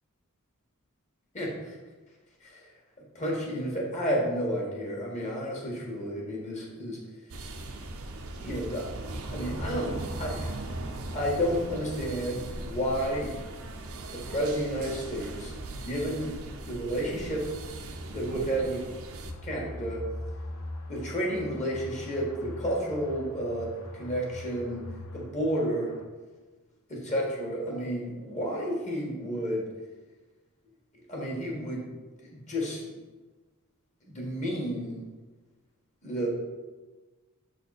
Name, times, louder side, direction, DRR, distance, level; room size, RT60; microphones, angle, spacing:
voice 1, 1.3-1.8 2.4-2.7 3.1-7.0 8.3-8.9 9.3-10.5 11.1-13.3 14.1-16.3 16.6-17.5 18.1-18.8 19.4-20.0 20.9-24.9 25.1-25.9 26.9-29.7 31.1-31.9 32.2-32.8 34.0-35.0 36.0-36.3, equal, 30° left, -2 dB, 1.7 m, -31 dB
sound 1, 7.3-19.3, right 2 dB, 70° right, 0.7 m, -38 dB
sound 2, 19.3-26.0, left 1 dB, 85° left, 0.8 m, -41 dB
7.5 x 4.1 x 4.2 m, 1.3 s
head